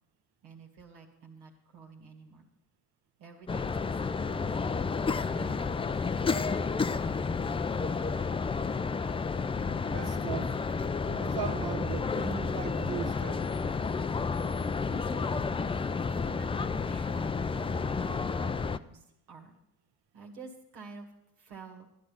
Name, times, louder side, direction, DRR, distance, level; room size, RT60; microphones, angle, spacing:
voice 1, 0.4-2.5 3.2-4.6 5.2-7.2 14.9-15.7 16.3-19.6 20.1-21.1 21.4-21.9, right 5 dB, 80° right, 2.0 m, -50 dB
sound 1, 3.5-18.8, left 4 dB, 15° left, 0.4 m, -31 dB
voice 2, 9.9-10.6 11.1-13.5, right 9 dB, 55° right, 1.1 m, -38 dB
13.0 x 11.0 x 5.6 m
hypercardioid pair, 45°, 47 cm